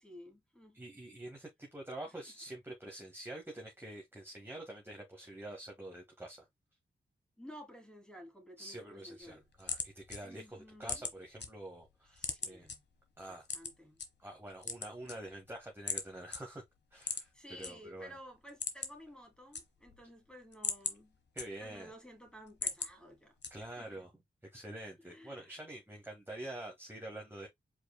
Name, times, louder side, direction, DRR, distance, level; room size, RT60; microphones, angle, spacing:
voice 1, 0.0-0.8 7.4-9.4 10.2-11.1 12.0-12.8 13.3-14.0 17.3-21.2 21.6-24.0 25.0-25.5, equal, 5° left, 2.7 m, -54 dB
voice 2, 0.7-6.5 8.6-12.7 13.2-13.5 14.2-16.6 16.9-18.1 21.3-21.9 23.5-24.1 24.5-27.5, right 1 dB, 10° right, 1.6 m, -47 dB
sound 1, 9.2-11.5 11.8-12.8 13.4-14.1 14.5-15.5 15.9-16.1 16.3-16.4 17.0-17.7 18.0-18.1 18.4-19.1 19.3-20.0 20.4-21.9 22.3-22.9 23.4-23.9, left 4 dB, 60° left, 1.1 m, -38 dB
4.7 x 4.5 x 2.3 m
cardioid pair, 65°, 20 cm